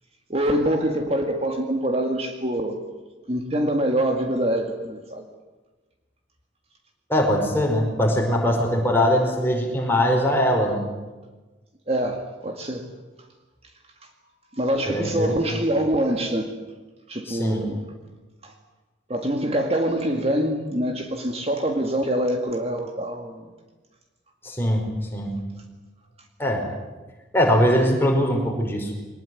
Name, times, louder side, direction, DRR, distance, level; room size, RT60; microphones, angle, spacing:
voice 1, 0.3-2.8 3.3-5.3 11.9-12.9 14.0-14.1 14.5-16.5 17.1-17.9 18.4-18.5 19.1-23.5, right 1 dB, 30° right, 4 dB, 2.0 m, -25 dB
voice 2, 7.1-10.8 14.9-15.6 17.3-17.6 24.4-24.8 25.1-25.3 26.4-26.6 27.3-28.9, equal, 10° left, 1 dB, 5.1 m, -21 dB
23.0 x 20.0 x 9.6 m, 1.2 s
head